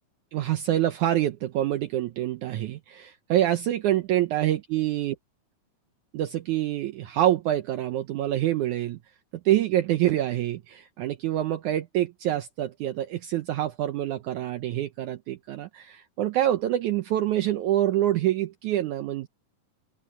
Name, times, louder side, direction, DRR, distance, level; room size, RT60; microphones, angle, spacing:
voice 1, 0.3-5.1 6.1-9.0 9.4-19.3, right 13 dB, 85° right, 1.7 m, -26 dB
open air
omnidirectional pair, 4.4 m